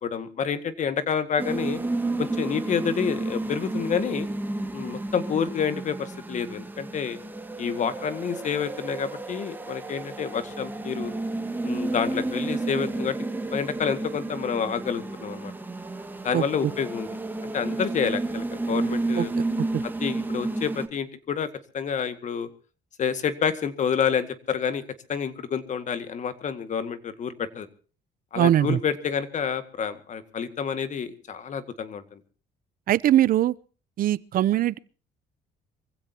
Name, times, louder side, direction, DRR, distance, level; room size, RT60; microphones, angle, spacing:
voice 1, 0.0-1.8 2.2-4.3 4.7-7.2 7.6-11.1 11.6-13.2 13.5-15.5 16.2-17.1 17.5-19.3 20.0-21.5 21.7-22.5 23.0-24.8 25.1-27.7 28.3-32.2, left 7 dB, 45° left, 2.0 m, -28 dB
sound 1, 1.4-20.9, right 2 dB, 10° right, 2.1 m, -31 dB
voice 2, 28.3-28.8 32.9-33.5 34.0-34.8, right 12 dB, 55° right, 0.7 m, -21 dB
24.5 x 16.0 x 2.9 m
cardioid pair, 110°, 17 cm